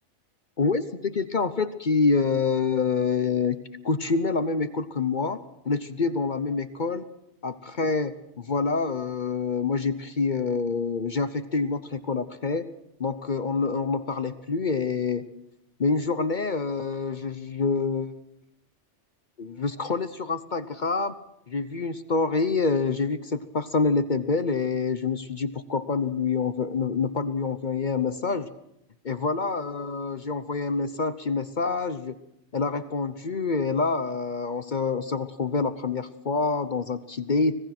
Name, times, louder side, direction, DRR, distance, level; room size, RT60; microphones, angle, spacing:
voice 1, 0.6-5.4 5.6-7.1 7.4-12.7 13.0-15.3 15.8-18.1 19.4-21.1 21.5-28.5 29.0-32.2 32.5-37.5, left 4 dB, 45° left, 12 dB, 0.9 m, -26 dB
26.0 x 17.5 x 6.0 m, 0.82 s
omnidirectional pair, 1.2 m